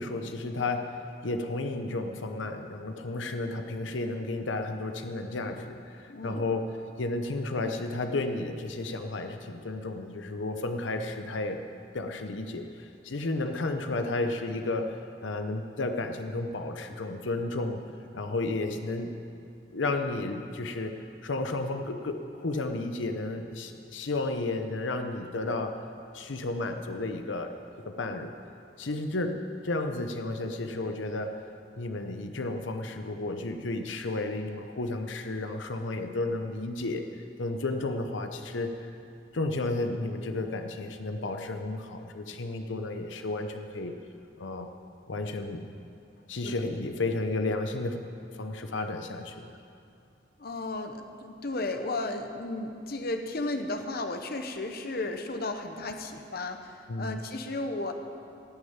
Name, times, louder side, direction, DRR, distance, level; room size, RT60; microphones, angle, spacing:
voice 1, 0.0-6.7 7.0-11.6 11.9-17.8 18.1-19.1 19.7-25.8 26.1-27.6 27.8-28.3 28.8-31.3 31.8-37.0 37.4-38.8 39.3-44.0 44.4-44.7 45.1-45.7 46.3-48.0 48.4-49.5 56.9-57.2, left 2 dB, 85° left, 6 dB, 0.8 m, -32 dB
voice 2, 6.1-6.4 46.4-46.5 50.4-57.9, left 2 dB, 55° left, 6 dB, 0.9 m, -34 dB
16.5 x 6.6 x 8.8 m, 2.5 s
head